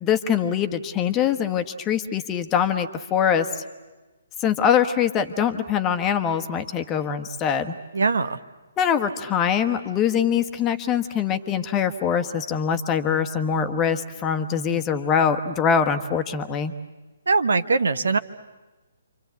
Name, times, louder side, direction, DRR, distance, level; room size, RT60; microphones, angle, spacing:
voice 1, 0.0-3.6 4.4-7.7 8.8-16.7, left 7 dB, 20° left, 8 dB, 1.3 m, -23 dB
voice 2, 7.9-8.4 17.3-18.2, right 4 dB, 65° right, 12 dB, 1.1 m, -21 dB
29.0 x 25.0 x 8.3 m, 1.2 s
figure-of-eight pair, 135°, 0 cm